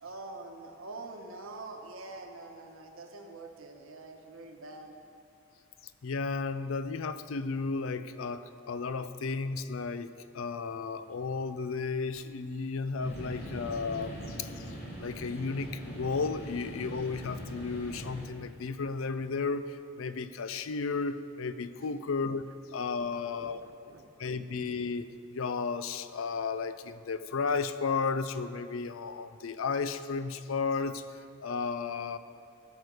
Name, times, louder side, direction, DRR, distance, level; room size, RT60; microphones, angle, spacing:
voice 1, 0.0-5.0 23.3-24.4, right 2 dB, 85° right, 3 dB, 1.1 m, -45 dB
voice 2, 6.0-10.1 10.3-14.6 15.0-23.6 24.2-32.2, left 4 dB, 85° left, 12 dB, 0.5 m, -33 dB
sound 1, 13.0-18.3, equal, 50° left, 2.6 m, -42 dB
16.0 x 6.5 x 4.8 m, 2.6 s
head